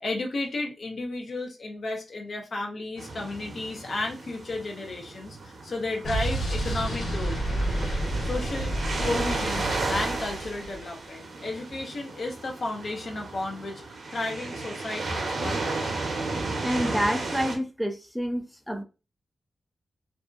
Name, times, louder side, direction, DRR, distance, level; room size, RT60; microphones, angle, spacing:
voice 1, 0.0-7.3 8.2-8.7 9.0-13.8 14.1-15.8, left 2 dB, 55° left, 0.8 m, -33 dB
sound 1, 3.0-17.6, right 3 dB, 65° right, 0.7 m, -34 dB
Explosion, 6.0-10.8, right 1 dB, 70° left, 1.4 m, -30 dB
voice 2, 16.6-18.8, equal, ahead, 0.4 m, -28 dB
2.6 x 2.5 x 2.4 m
wide cardioid pair, 100°, 0 cm